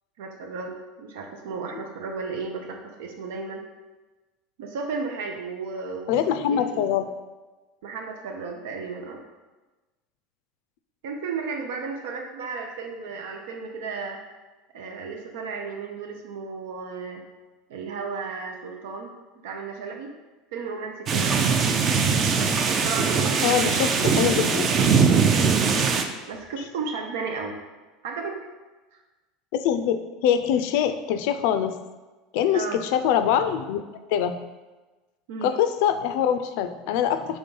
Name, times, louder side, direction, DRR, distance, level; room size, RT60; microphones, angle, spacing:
voice 1, 0.2-3.6 4.6-6.6 7.8-9.2 11.0-14.2 14.7-17.2 17.7-19.1 19.4-20.1 20.5-21.4 22.8-24.1 25.6-25.9 26.3-27.6 28.0-28.4 28.9-29.0 32.5-32.8 35.3-35.5, right 4 dB, 90° right, 2 dB, 0.6 m, -34 dB
voice 2, 6.1-7.1 23.4-24.7 29.5-31.8 32.3-33.8 34.1-34.4 35.4-37.4, left 9 dB, 60° left, 10 dB, 0.4 m, -24 dB
sound 1, 21.1-26.0, right 5 dB, 25° right, 0.4 m, -21 dB
5.3 x 3.5 x 5.4 m, 1.2 s
cardioid pair, 170°, 0 cm